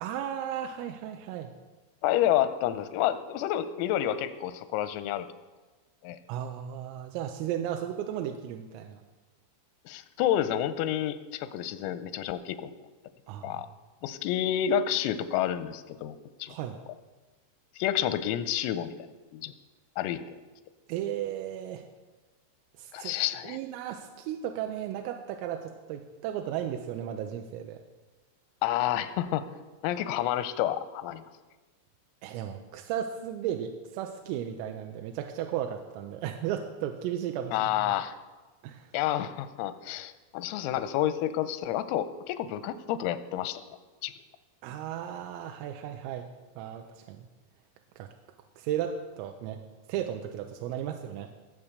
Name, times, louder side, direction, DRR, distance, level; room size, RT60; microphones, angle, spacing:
voice 1, 0.0-1.5 6.3-9.0 13.3-13.6 16.5-16.8 20.9-21.9 22.8-23.2 23.4-27.8 32.2-37.9 38.6-38.9 44.6-47.3 48.0-48.1 48.6-49.6 49.9-51.3, right 10 dB, 85° right, 5 dB, 3.3 m, -35 dB
voice 2, 2.0-5.3 6.0-6.2 9.9-12.7 13.4-13.7 14.0-16.6 17.8-18.9 19.3-19.5 20.0-20.2 22.9-23.6 28.6-29.5 29.8-31.2 37.5-38.2 38.9-43.6 44.0-44.1, left 11 dB, 85° left, 13 dB, 3.4 m, -29 dB
19.5 x 7.4 x 6.5 m, 1.2 s
omnidirectional pair, 6.0 m